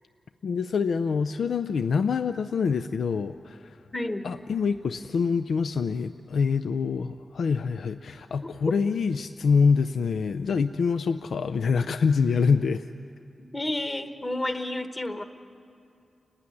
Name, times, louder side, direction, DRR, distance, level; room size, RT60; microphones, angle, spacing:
voice 1, 0.4-3.8 4.2-12.9, left 5 dB, 85° left, 10 dB, 0.5 m, -25 dB
voice 2, 3.9-4.3 8.4-8.5 13.5-15.2, left 1 dB, 20° left, 7 dB, 1.1 m, -30 dB
29.5 x 15.5 x 10.0 m, 2.6 s
wide cardioid pair, 170°, 0 cm